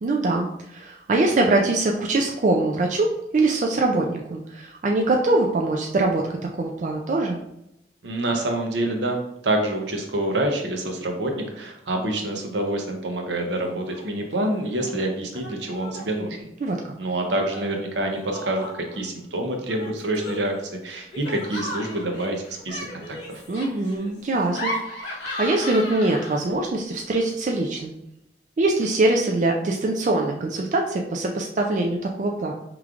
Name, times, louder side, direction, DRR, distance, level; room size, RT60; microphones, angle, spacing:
voice 1, 0.0-6.3 6.5-7.4 16.6-16.9 23.5-27.9 28.6-32.5, right 2 dB, 40° right, 1 dB, 0.3 m, -23 dB
voice 2, 8.0-16.5 17.0-20.6 20.8-23.4, right 1 dB, 75° right, 2 dB, 0.7 m, -27 dB
Laughter, 13.6-14.0 14.3-14.9 15.3-16.2 17.5-19.0 19.7-26.6, left 1 dB, 80° left, 1.2 m, -36 dB
4.8 x 3.1 x 2.4 m, 0.84 s
head